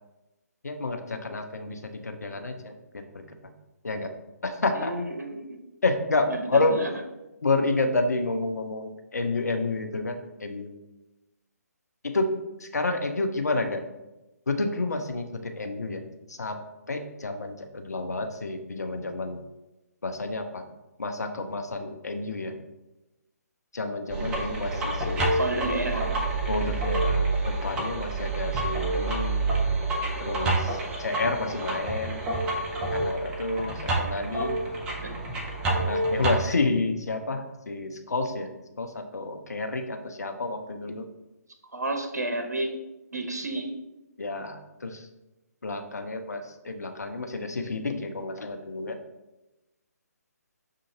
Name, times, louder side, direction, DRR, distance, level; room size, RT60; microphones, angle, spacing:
voice 1, 0.6-3.5 3.8-4.1 4.4-4.9 5.8-6.8 7.4-10.7 12.0-12.3 12.6-13.8 14.5-16.0 16.3-16.6 16.9-19.4 20.0-20.6 21.0-22.5 23.7-25.5 26.5-29.4 30.2-32.2 32.9-34.6 35.7-38.5 38.8-41.1 44.2-45.1 45.6-49.0, left 3 dB, 70° left, 6 dB, 0.6 m, -30 dB
voice 2, 4.7-5.6 6.3-6.9 25.3-26.2 35.0-35.1 41.7-42.8 43.1-43.7, right 2 dB, 70° right, 4 dB, 0.7 m, -31 dB
sound 1, 24.1-36.4, right 2 dB, 10° right, 0.4 m, -28 dB
6.4 x 2.5 x 2.8 m, 1.0 s
figure-of-eight pair, 140°, 9 cm